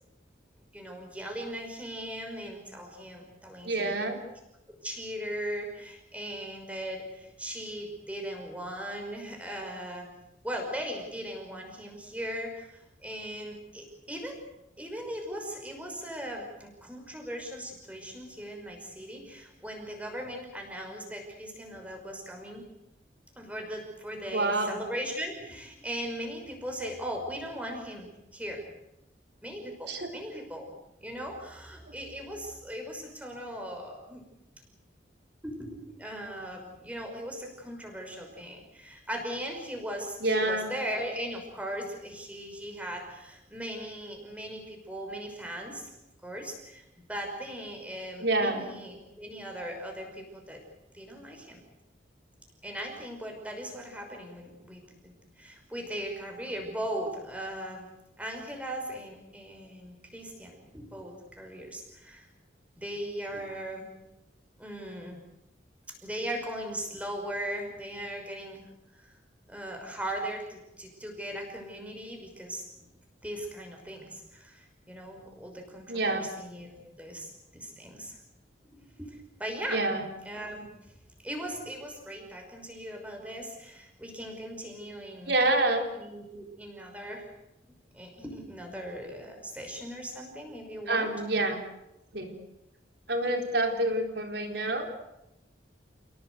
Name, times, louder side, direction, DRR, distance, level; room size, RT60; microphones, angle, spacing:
voice 1, 0.7-4.0 4.8-10.1 10.4-14.4 14.8-22.7 23.4-28.6 29.4-30.7 31.0-34.2 35.4-45.9 46.2-46.8 47.1-50.6 50.9-51.6 52.6-57.9 58.2-62.3 62.8-63.9 64.6-65.2 66.0-68.7 69.0-69.1 69.5-72.8 73.2-76.7 77.0-78.2 78.6-79.8 80.2-80.7 81.2-85.4 85.9-87.3 87.9-91.1, equal, 5° right, 2 dB, 5.7 m, -39 dB
voice 2, 3.6-4.2 24.3-24.8 29.9-30.1 40.2-40.7 48.2-48.6 75.9-76.3 79.7-80.0 85.3-85.9 90.9-91.6 92.1-92.3 93.1-94.9, right 2 dB, 65° right, 3 dB, 4.4 m, -27 dB
29.5 x 18.0 x 8.1 m, 0.90 s
head